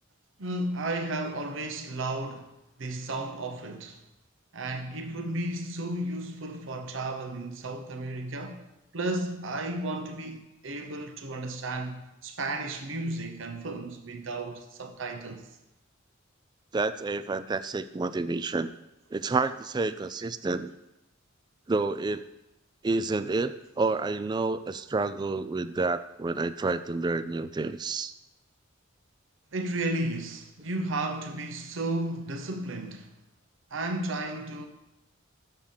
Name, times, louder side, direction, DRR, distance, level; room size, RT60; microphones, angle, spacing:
voice 1, 0.4-2.5 2.8-4.0 4.5-8.6 8.9-15.5 29.5-33.1 33.7-34.7, right 2 dB, 65° right, 0.9 m, -33 dB
voice 2, 16.7-18.7 19.1-20.7 21.7-22.3 22.8-28.1, right 3 dB, 20° right, 0.3 m, -29 dB
7.3 x 6.8 x 5.6 m
head